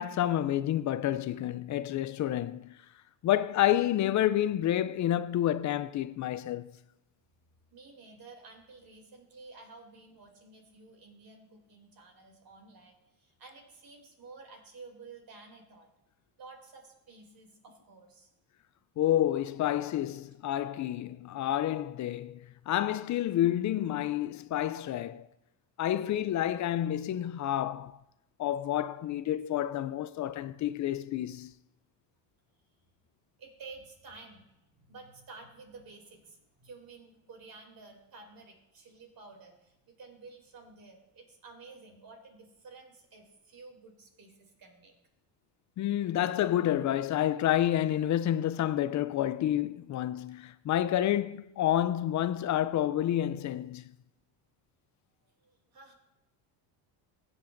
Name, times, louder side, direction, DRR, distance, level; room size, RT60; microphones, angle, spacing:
voice 1, 0.0-2.8 3.2-6.7 19.0-25.3 25.8-27.9 28.4-31.5 45.8-53.9, left 12 dB, 40° left, 0.4 m, -29 dB
voice 2, 7.7-15.9 16.4-18.3 33.4-44.9 55.2-55.9, right 3 dB, 45° right, 2.8 m, -52 dB
16.0 x 8.0 x 2.6 m
supercardioid pair, 90°, 47 cm